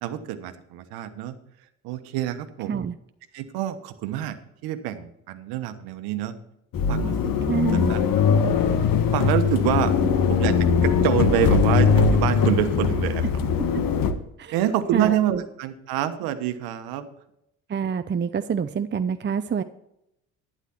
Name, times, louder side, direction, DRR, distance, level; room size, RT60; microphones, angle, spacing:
voice 1, 0.0-1.4 1.8-2.8 3.3-4.4 4.6-6.3 6.9-7.3 7.7-8.0 9.1-9.9 10.3-13.2 14.5-17.1, right 11 dB, 75° right, 10 dB, 1.2 m, -27 dB
sound 1, 6.7-14.1, left 6 dB, 60° left, 1.4 m, -21 dB
voice 2, 7.5-7.9 10.0-10.1 13.7-13.8 14.4-14.6 14.9-15.4 17.7-19.6, right 7 dB, 30° right, 9 dB, 0.7 m, -27 dB
11.5 x 9.8 x 4.4 m, 0.79 s
hypercardioid pair, 55°, 38 cm